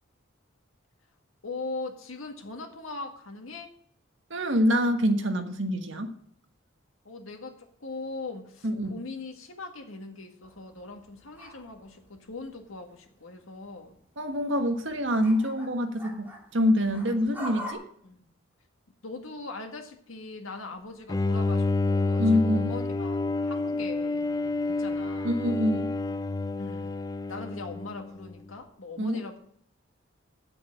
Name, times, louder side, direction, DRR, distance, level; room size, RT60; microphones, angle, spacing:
voice 1, 1.4-3.7 7.0-14.0 18.0-18.3 19.0-24.2 24.6-25.4 26.6-26.9 27.3-29.4, left 3 dB, 90° left, 4 dB, 1.9 m, -40 dB
voice 2, 4.3-6.1 8.6-9.0 14.2-16.3 16.5-17.8 22.2-22.6 25.2-25.9 29.0-29.2, equal, 65° right, 6 dB, 1.4 m, -25 dB
sound 1, 10.4-13.1 13.4-17.7, equal, 10° right, 2.4 m, -45 dB
Bowed string instrument, 21.1-28.3, left 3 dB, 20° left, 0.3 m, -29 dB
9.2 x 7.6 x 7.4 m, 0.66 s
head